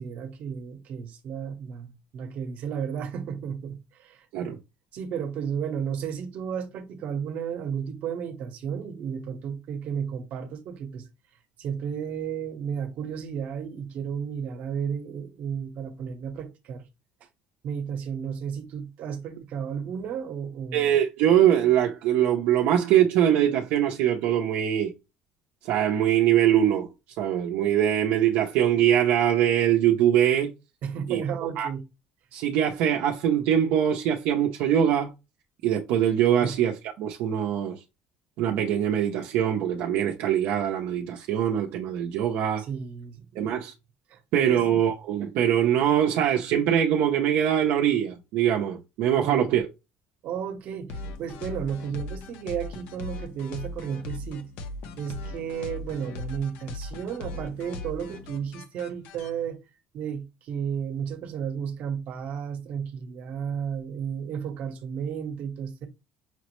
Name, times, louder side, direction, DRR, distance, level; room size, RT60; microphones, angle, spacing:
voice 1, 0.0-4.6 4.9-11.1 11.6-16.8 17.6-20.9 30.8-31.8 36.4-36.5 42.6-43.6 44.1-44.2 44.5-44.7 49.2-49.4 50.2-54.5 55.0-59.6 59.9-65.9, right 7 dB, 55° right, 0.9 m, -33 dB
voice 2, 20.7-24.9 25.6-26.9 27.2-30.5 31.1-31.2 31.6-31.7 32.3-35.1 35.6-37.7 38.4-42.6 43.4-43.7 44.3-49.7, right 10 dB, 75° right, 0.6 m, -23 dB
sound 1, 50.9-59.3, left 2 dB, 75° left, 0.7 m, -38 dB
5.8 x 2.0 x 3.0 m
cardioid pair, 135°, 3 cm